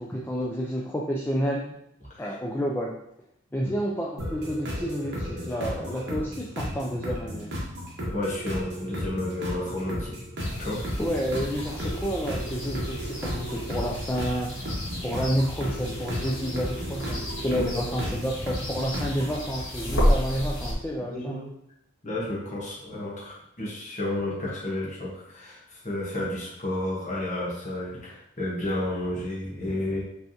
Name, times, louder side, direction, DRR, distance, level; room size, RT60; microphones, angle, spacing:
voice 1, 0.0-1.8 2.2-2.9 3.5-7.5 11.0-14.7 15.0-21.4, equal, 10° left, -2 dB, 0.3 m, -30 dB
sound 1, 4.2-19.4, equal, 55° right, 1.3 m, -34 dB
voice 2, 8.1-10.1 10.6-10.8 17.5-18.1 21.1-21.5 22.0-30.0, left 1 dB, 35° left, -5 dB, 1.2 m, -32 dB
sound 2, 10.4-20.7, equal, 70° left, 1.8 m, -32 dB
5.1 x 3.4 x 2.9 m, 0.76 s
head